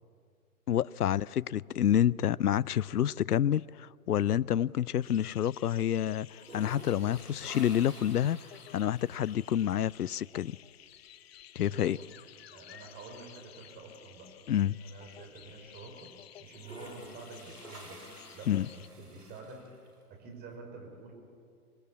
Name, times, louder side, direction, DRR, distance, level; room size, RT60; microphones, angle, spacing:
voice 1, 0.7-8.4 8.7-10.6 11.6-12.0 14.5-14.8 18.5-18.7, left 10 dB, 80° left, 0.5 m, -28 dB
sound 1, 2.4-3.0 3.4-5.4 5.6-5.7 6.2-10.0 11.4-11.5 11.9-12.0 12.4-14.8 15.2-15.3 16.4-20.0, right 1 dB, 85° right, 5.2 m, -51 dB
sound 2, 5.0-18.9, left 11 dB, 40° left, 0.9 m, -54 dB
voice 2, 11.6-12.1 12.5-14.3 14.8-16.1 16.4-19.6 20.1-21.1, right 3 dB, 20° right, 5.2 m, -48 dB
25.0 x 20.0 x 8.6 m
figure-of-eight pair, 125°, 45 cm